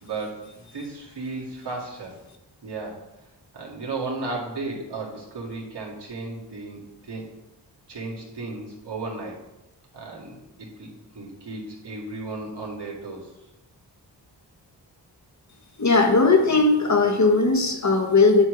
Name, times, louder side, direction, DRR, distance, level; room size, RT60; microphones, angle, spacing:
voice 1, 0.0-2.1 2.6-3.0 3.5-7.3 7.9-9.4 9.9-13.3, right 3 dB, 65° right, -3 dB, 2.0 m, -34 dB
voice 2, 15.8-18.5, left 3 dB, 40° left, 3 dB, 1.1 m, -18 dB
8.6 x 3.2 x 5.0 m, 0.98 s
cardioid pair, 50°, 44 cm